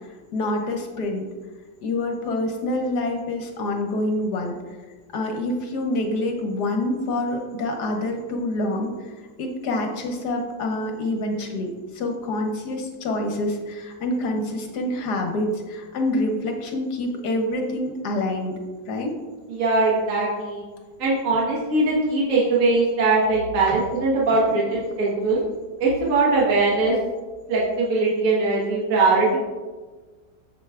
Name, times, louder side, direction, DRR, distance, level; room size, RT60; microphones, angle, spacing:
voice 1, 0.3-1.3 1.8-4.6 5.1-8.9 9.4-18.6 18.9-19.2 23.7-23.8 24.5-24.7, left 1 dB, 70° left, 3 dB, 1.3 m, -26 dB
voice 2, 19.5-20.6 21.0-25.4 25.8-27.0 27.5-29.4, right 3 dB, 50° right, -6 dB, 1.6 m, -21 dB
7.7 x 7.0 x 2.4 m, 1.3 s
omnidirectional pair, 1.9 m